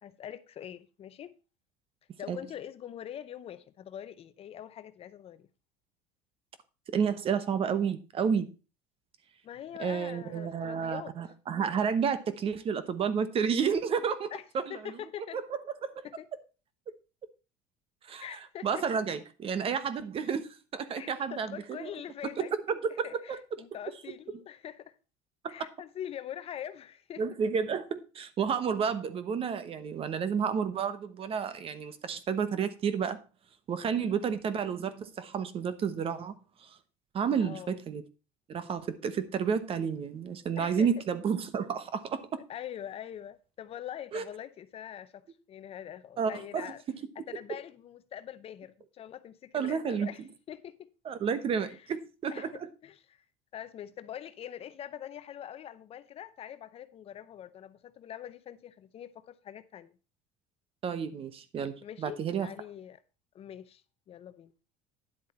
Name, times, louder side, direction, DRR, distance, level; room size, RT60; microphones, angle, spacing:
voice 1, 0.0-1.3 2.2-5.5 9.4-11.1 14.3-14.4 14.7-15.4 16.0-16.3 18.2-18.9 20.2-20.3 21.0-22.5 23.0-25.0 25.5-27.2 33.9-34.4 37.4-37.8 40.6-41.0 42.5-46.8 47.2-50.2 50.5-50.9 51.6-51.9 52.3-53.2 53.5-59.9 61.8-63.0 63.3-64.5, left 10 dB, 35° left, 0.6 m, -44 dB
voice 2, 6.9-8.5 9.8-14.3 15.3-15.4 15.8-16.0 18.1-18.2 18.6-21.9 22.4-23.4 25.4-25.5 27.2-33.2 33.7-36.3 37.1-38.0 38.5-42.4 44.1-44.2 46.2-46.7 49.5-50.1 51.0-52.5 60.8-62.5, right 6 dB, 35° right, 1.0 m, -31 dB
10.5 x 7.6 x 4.3 m
cardioid pair, 130°, 16 cm